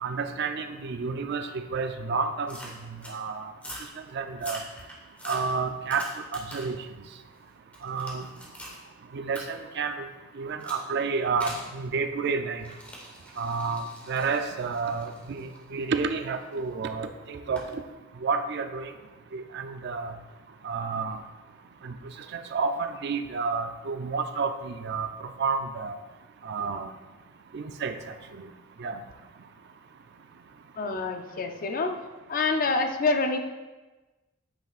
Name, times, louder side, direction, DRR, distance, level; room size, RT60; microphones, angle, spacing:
voice 1, 0.0-2.6 3.1-3.5 4.1-4.6 5.3-6.8 7.8-8.3 9.1-10.0 10.4-12.6 13.4-17.6 18.2-18.9 19.3-20.1 20.6-21.2 21.8-22.0 22.3-25.9 26.4-26.9 27.5-28.5 28.8-29.0, right 4 dB, 55° right, 8 dB, 0.4 m, -30 dB
sound 1, 2.5-3.2 3.6-3.9 4.3-6.8 7.2-8.8 9.4-9.5 10.6-10.9 11.4-11.7 12.6-16.6 17.6-17.7, equal, 5° left, 1.2 m, -43 dB
voice 2, 30.8-31.9 32.3-33.4, left 3 dB, 45° left, 5 dB, 0.5 m, -26 dB
8.7 x 5.7 x 2.4 m, 1.2 s
head